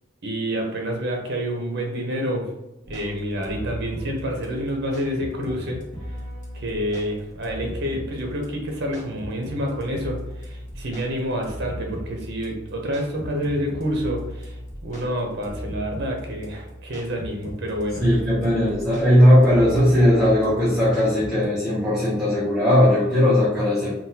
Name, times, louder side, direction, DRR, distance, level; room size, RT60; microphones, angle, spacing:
voice 1, 0.2-2.5 2.9-5.8 6.5-14.6 14.8-18.0, equal, 55° right, 2 dB, 0.7 m, -28 dB
sound 1, 2.8-21.5, equal, 40° left, 0.8 m, -37 dB
voice 2, 18.0-24.0, equal, ahead, -10 dB, 0.6 m, -18 dB
3.8 x 2.2 x 2.7 m, 0.96 s
head